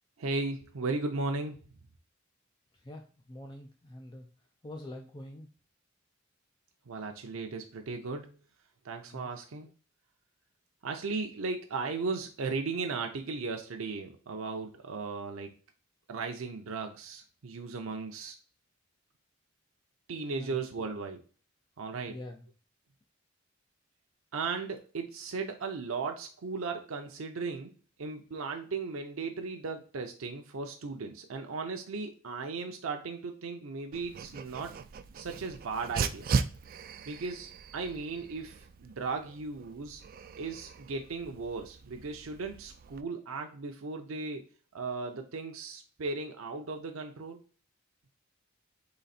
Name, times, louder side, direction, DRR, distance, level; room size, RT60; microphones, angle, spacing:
voice 1, 0.2-1.6 6.9-8.4 8.8-9.7 10.8-15.5 16.1-18.4 20.1-21.2 21.8-22.2 24.3-27.7 28.0-34.8 35.1-36.3 37.1-40.0 40.4-44.4 44.7-47.4, right 4 dB, 90° right, 4 dB, 0.6 m, -36 dB
voice 2, 2.8-4.3 4.6-5.5 9.1-9.3 20.3-20.6 22.1-22.5, left 1 dB, 20° left, 3 dB, 0.5 m, -45 dB
Dog, 33.9-43.0, right 5 dB, 45° right, 0.3 m, -38 dB
4.0 x 3.2 x 4.0 m, 0.40 s
head